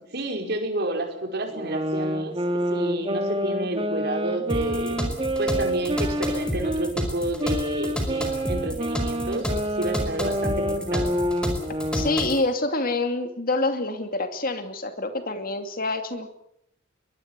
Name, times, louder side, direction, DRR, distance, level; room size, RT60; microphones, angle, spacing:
voice 1, 0.1-2.3 2.7-5.0 5.4-11.1, right 1 dB, 55° right, 4 dB, 5.2 m, -30 dB
sound 1, 1.5-6.9 7.4-12.3, equal, 25° right, 2.4 m, -28 dB
sound 2, 4.5-12.4, equal, 5° left, 4.8 m, -30 dB
voice 2, 11.9-16.3, left 2 dB, 45° left, 7 dB, 2.6 m, -27 dB
23.0 x 20.0 x 8.2 m, 0.78 s
head